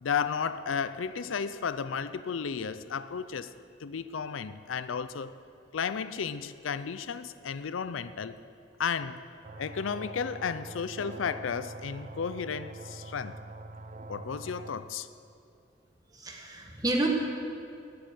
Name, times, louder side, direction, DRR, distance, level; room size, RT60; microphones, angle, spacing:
voice 1, 0.0-3.5 3.8-5.3 5.7-8.3 8.8-9.2 9.6-13.3 14.1-15.1, left 6 dB, 80° left, 13 dB, 0.5 m, -33 dB
sound 1, 9.4-14.7, right 2 dB, 40° right, 0.6 m, -44 dB
voice 2, 16.1-17.1, right 1 dB, 20° right, 1 dB, 1.6 m, -29 dB
18.5 x 7.7 x 6.9 m, 2.5 s
head